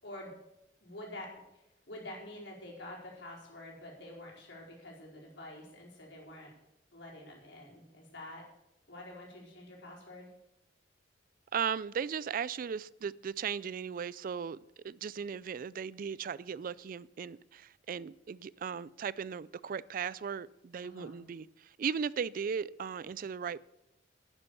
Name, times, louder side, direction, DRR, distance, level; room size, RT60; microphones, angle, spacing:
voice 1, 0.8-6.5 6.9-8.4 8.9-10.3 20.8-21.2, left 1 dB, 75° left, 4.8 m, -47 dB
voice 2, 11.5-23.6, right 7 dB, 50° right, 0.3 m, -37 dB
11.5 x 10.0 x 7.0 m
head